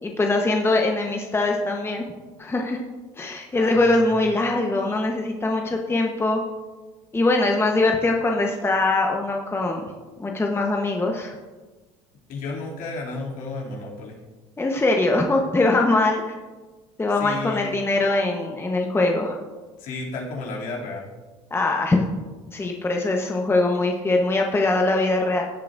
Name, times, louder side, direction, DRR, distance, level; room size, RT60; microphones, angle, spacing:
voice 1, 0.0-2.0 2.4-2.8 3.2-6.4 7.1-9.9 10.2-11.3 14.6-16.3 17.0-19.4 21.5-22.1 22.5-25.4, left 2 dB, 15° left, 1 dB, 1.1 m, -22 dB
voice 2, 3.5-4.2 12.3-14.2 17.2-17.6 19.8-21.1, left 3 dB, 65° left, -3 dB, 2.9 m, -33 dB
16.5 x 8.2 x 2.6 m, 1.3 s
supercardioid pair, 85°, 15 cm